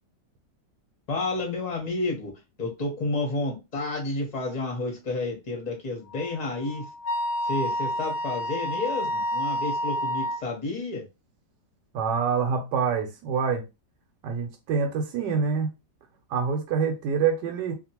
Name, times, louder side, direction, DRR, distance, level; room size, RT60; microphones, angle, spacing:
voice 1, 1.1-2.3 2.6-6.9 7.4-11.0, left 2 dB, 30° left, 0.8 m, -30 dB
Wind instrument woodwind instrument, 6.1-10.4, equal, 75° left, 1.1 m, -29 dB
voice 2, 11.9-13.6 14.2-15.7 16.3-17.7, right 6 dB, 90° right, 1.2 m, -26 dB
2.8 x 2.4 x 2.8 m
omnidirectional pair, 1.8 m